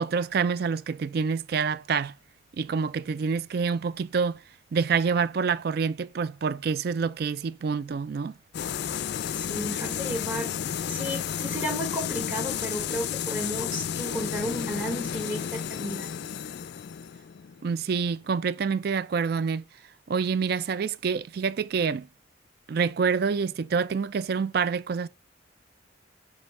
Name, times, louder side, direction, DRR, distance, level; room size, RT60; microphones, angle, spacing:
voice 1, 0.0-2.1 2.6-4.4 4.7-8.4 17.6-19.6 20.1-22.1 22.7-25.1, right 5 dB, 55° right, 0.4 m, -27 dB
sound 1, 8.5-18.2, left 8 dB, 60° left, 0.3 m, -32 dB
voice 2, 9.3-10.5 10.9-16.1, equal, 10° right, 1.0 m, -33 dB
7.7 x 2.7 x 5.3 m
head